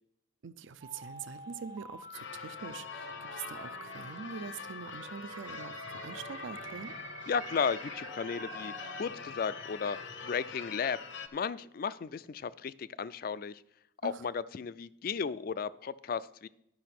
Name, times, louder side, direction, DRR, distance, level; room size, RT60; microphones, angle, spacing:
voice 1, 0.4-7.0 14.0-14.2, right 6 dB, 70° right, 13 dB, 0.4 m, -44 dB
sound 1, 0.8-9.0, right 2 dB, 20° right, 0.6 m, -48 dB
Church bell / Car / Alarm, 2.1-11.3, left 5 dB, 65° left, 0.8 m, -44 dB
voice 2, 7.3-10.0 10.2-11.0 11.3-13.6 14.0-16.5, left 6 dB, 45° left, 18 dB, 0.3 m, -34 dB
11.0 x 5.8 x 5.9 m, 0.77 s
head